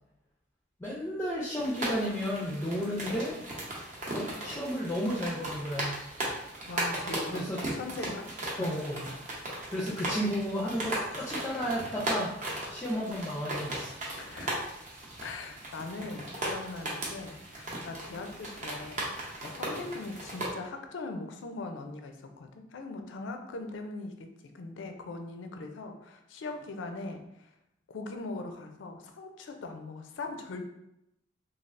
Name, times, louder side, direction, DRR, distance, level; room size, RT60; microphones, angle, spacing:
voice 1, 0.8-3.4 4.1-6.0 7.3-7.6 8.6-9.1 9.7-12.3 12.7-14.0, equal, 15° left, -5 dB, 0.4 m, -33 dB
sound 1, 1.6-20.5, right 1 dB, 40° right, 0.7 m, -37 dB
voice 2, 6.7-8.8 14.2-14.7 15.2-27.5 27.9-30.7, left 3 dB, 80° left, 5 dB, 0.4 m, -41 dB
3.2 x 2.3 x 2.5 m, 0.85 s
head